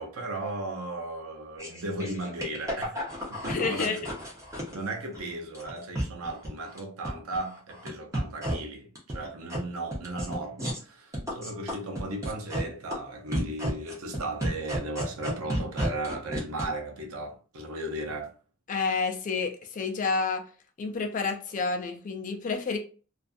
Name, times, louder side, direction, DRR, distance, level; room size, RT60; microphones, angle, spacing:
voice 1, 0.0-4.0 4.7-18.3, right 2 dB, 85° right, 0.6 m, -36 dB
sound 1, 1.6-5.2 5.5-6.8 7.0-7.9 8.1-8.5 9.0-9.6 9.9-10.8 11.1-12.6 12.9-13.0 13.3-16.6, equal, 15° right, 0.7 m, -32 dB
voice 2, 3.5-4.1 18.7-20.4 20.8-22.8, left 4 dB, 35° left, 0.4 m, -29 dB
2.4 x 2.4 x 2.4 m
head